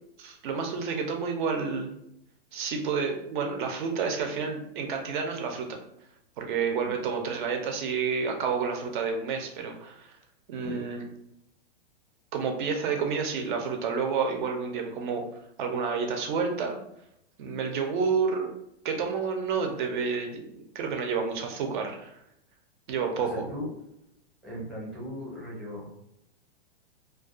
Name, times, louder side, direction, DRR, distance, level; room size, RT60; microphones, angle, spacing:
voice 1, 0.2-1.9 2.5-5.7 6.4-10.2 10.5-11.0 12.3-15.2 15.6-16.8 17.4-18.5 18.8-22.1 22.9-23.5, right 5 dB, 50° right, 3 dB, 0.6 m, -29 dB
voice 2, 23.2-23.7 24.4-25.9, left 1 dB, ahead, -7 dB, 0.7 m, -38 dB
2.3 x 2.2 x 2.4 m, 0.79 s
hypercardioid pair, 150°, 31 cm